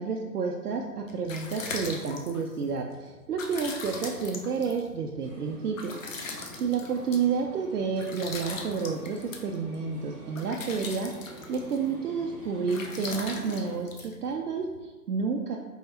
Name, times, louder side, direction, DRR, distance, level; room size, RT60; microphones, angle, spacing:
voice 1, 0.0-15.6, right 5 dB, 70° right, 1 dB, 0.6 m, -30 dB
sound 1, 0.8-14.8, left 4 dB, 55° left, 0.7 m, -41 dB
sound 2, 5.2-13.7, right 1 dB, 5° right, 0.8 m, -46 dB
4.5 x 3.4 x 2.8 m, 1.2 s
hypercardioid pair, 150°, 49 cm